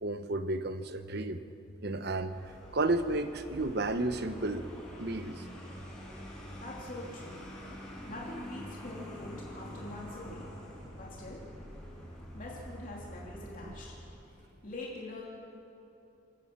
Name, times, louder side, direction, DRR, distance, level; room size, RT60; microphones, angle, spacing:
voice 1, 0.0-1.4 1.8-2.4 2.7-4.7 5.0-5.4 13.6-13.7, right 2 dB, 60° right, 10 dB, 1.1 m, -32 dB
Vehicle, 2.1-14.4, equal, 5° left, 5.8 m, -46 dB
voice 2, 6.6-7.4 8.1-10.5 10.9-11.5 12.3-13.9 14.3-15.2, left 2 dB, 45° left, -4 dB, 3.1 m, -44 dB
27.5 x 16.0 x 6.1 m, 2.9 s
head